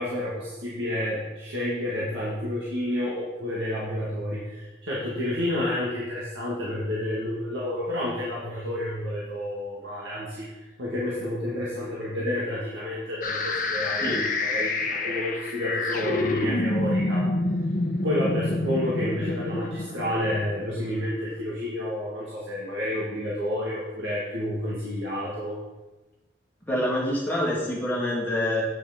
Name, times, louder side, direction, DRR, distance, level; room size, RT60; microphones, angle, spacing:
voice 1, 0.0-17.3 18.0-25.6, left 1 dB, 85° right, -7 dB, 2.1 m, -30 dB
sound 1, 13.2-21.1, left 2 dB, 45° left, 0.9 m, -28 dB
voice 2, 26.6-28.6, left 1 dB, 10° left, -6 dB, 2.3 m, -26 dB
9.0 x 5.8 x 5.3 m, 1.1 s
head